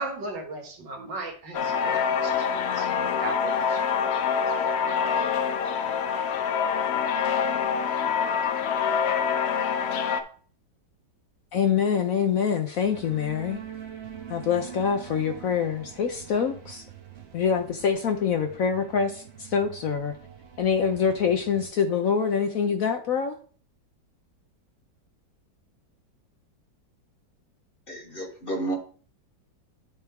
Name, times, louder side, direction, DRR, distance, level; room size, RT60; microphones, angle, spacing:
voice 1, 0.0-3.8, right 3 dB, 75° right, 3 dB, 2.0 m, -37 dB
sound 1, 1.5-10.2, left 7 dB, 85° left, 0.5 m, -25 dB
voice 2, 11.5-13.6 14.3-16.8 17.3-20.1 20.6-23.3, left 7 dB, 60° left, 5 dB, 0.9 m, -25 dB
sound 2, 12.8-21.7, right 9 dB, 45° right, 1.0 m, -44 dB
voice 3, 27.9-28.8, right 2 dB, 35° left, 3 dB, 1.2 m, -31 dB
10.5 x 4.4 x 3.5 m, 0.43 s
omnidirectional pair, 1.9 m